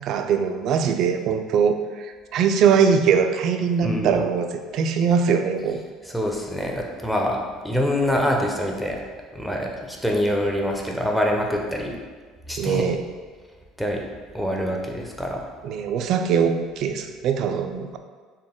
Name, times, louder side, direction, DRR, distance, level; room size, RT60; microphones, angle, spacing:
voice 1, 0.0-5.8 12.6-13.0 15.6-18.0, right 6 dB, 60° right, 7 dB, 0.3 m, -22 dB
voice 2, 3.8-4.2 6.0-9.0 9.3-12.0 12.5-12.8 13.8-14.0 14.3-15.4, equal, 5° left, 0 dB, 0.6 m, -25 dB
3.9 x 2.1 x 3.6 m, 1.5 s
supercardioid pair, 80°, 0 cm